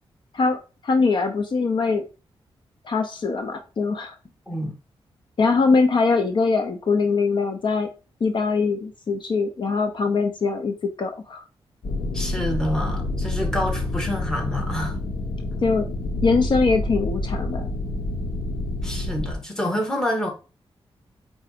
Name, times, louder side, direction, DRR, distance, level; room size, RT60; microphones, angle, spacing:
voice 1, 0.3-2.0 2.8-4.1 5.4-7.9 8.2-11.4 15.6-15.9 16.2-17.7, left 4 dB, 55° left, 0.8 m, -22 dB
sound 1, 11.8-19.3, left 2 dB, 75° left, 1.3 m, -28 dB
voice 2, 12.1-15.0 18.8-20.3, equal, 5° left, 1.7 m, -27 dB
4.8 x 4.0 x 5.0 m
wide cardioid pair, 120°, 10 cm